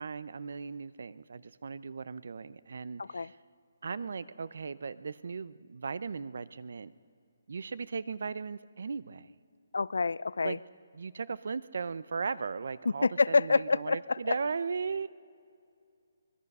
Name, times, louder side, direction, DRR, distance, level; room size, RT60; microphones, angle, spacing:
voice 1, 0.0-3.4 3.8-6.9 7.5-9.3 10.4-10.6 10.9-15.1, right 5 dB, 50° right, 17 dB, 0.6 m, -37 dB
voice 2, 3.0-3.3 9.7-10.6 13.0-14.3, left 4 dB, 85° left, 21 dB, 0.4 m, -27 dB
24.0 x 20.5 x 5.4 m, 2.3 s
hypercardioid pair, 180°, 0 cm